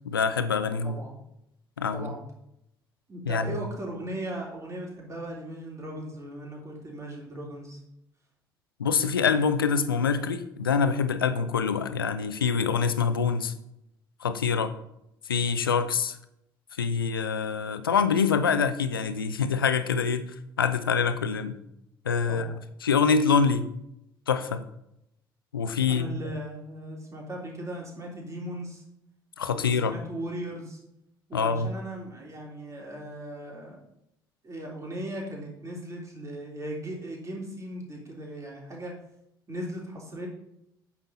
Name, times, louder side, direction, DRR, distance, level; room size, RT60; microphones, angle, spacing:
voice 1, 0.0-1.0 1.8-2.1 3.3-3.6 8.8-13.5 14.2-14.7 15.3-16.2 16.8-20.3 20.6-21.5 22.1-22.5 22.8-23.7 24.3-24.6 25.5-26.1 29.4-29.9 31.3-31.7, left 6 dB, 85° left, 11 dB, 0.6 m, -25 dB
voice 2, 0.8-1.2 1.9-2.2 3.1-7.8 22.3-22.5 25.9-28.8 29.5-30.8 31.3-33.8 34.4-38.9 39.5-40.3, right 1 dB, 25° right, -2 dB, 3.4 m, -38 dB
8.8 x 7.2 x 4.1 m, 0.80 s
figure-of-eight pair, 50°, 12 cm